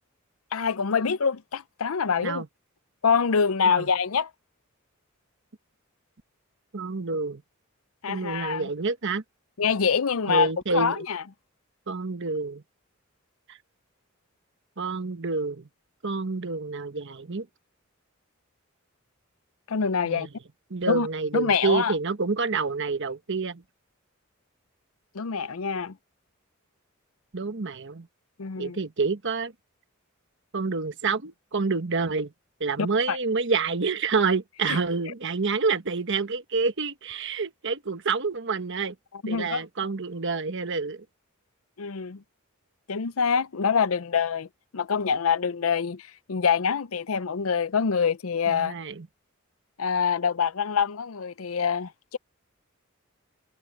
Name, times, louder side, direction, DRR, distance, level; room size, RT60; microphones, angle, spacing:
voice 1, 0.5-2.4 3.0-4.3 8.0-8.7 9.6-11.2 19.7-20.3 20.9-21.1 21.3-21.9 25.1-26.0 28.4-28.8 32.8-33.2 34.7-34.8 39.2-39.6 41.8-42.2 42.9-44.5 44.7-48.7 49.8-52.2, left 6 dB, 80° left, 0.6 m, -25 dB
voice 2, 6.7-7.4 8.1-9.2 10.3-11.0 11.9-12.6 13.5-13.6 14.8-15.7 16.0-17.5 20.0-20.3 20.7-23.6 27.3-28.1 28.6-29.5 30.5-32.3 32.6-38.9 39.3-41.0 48.5-49.1, right 4 dB, 60° right, 1.2 m, -28 dB
head